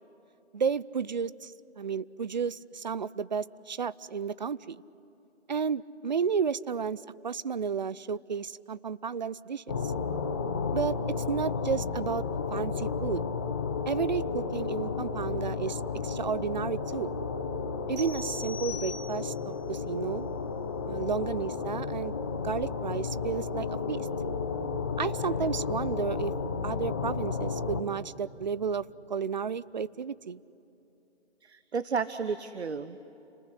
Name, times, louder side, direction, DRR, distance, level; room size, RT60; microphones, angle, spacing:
voice 1, 0.5-4.8 5.5-9.9 10.7-13.3 13.9-17.1 17.9-20.3 20.9-22.2 22.4-24.1 25.0-26.3 26.6-30.4, right 6 dB, 40° right, 19 dB, 0.6 m, -32 dB
sound 1, 9.7-27.8, left 5 dB, 20° left, 0.7 m, -33 dB
sound 2, 18.0-19.5, left 4 dB, 15° right, 3.2 m, -41 dB
voice 2, 31.4-33.0, right 5 dB, 70° right, 12 dB, 1.1 m, -32 dB
30.0 x 20.0 x 9.9 m, 2.9 s
figure-of-eight pair, 160°, 34 cm